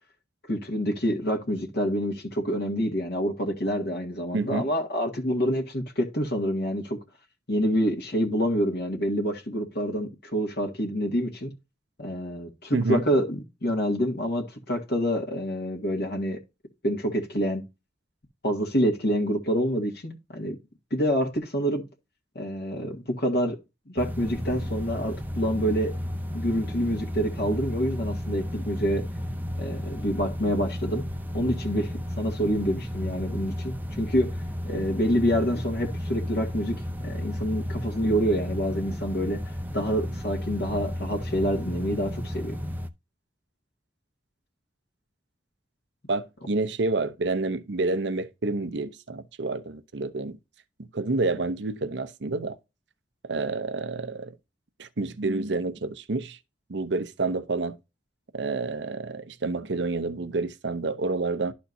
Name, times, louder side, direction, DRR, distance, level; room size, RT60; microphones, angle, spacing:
voice 1, 0.5-7.0 7.5-11.5 12.0-16.4 16.8-17.6 18.4-20.6 20.9-21.8 22.4-23.6 23.9-26.0 26.3-29.0 29.6-31.0 31.3-34.3 34.7-36.8 37.0-42.6, equal, 60° left, 1.7 m, -27 dB
voice 2, 4.3-4.7 12.7-13.0 46.1-50.4 50.9-52.6 53.3-54.3 54.8-56.4 56.7-57.8 58.3-61.5, right 3 dB, 70° right, 0.7 m, -28 dB
sound 1, 24.0-42.9, equal, 10° right, 0.6 m, -33 dB
12.0 x 4.3 x 2.7 m
head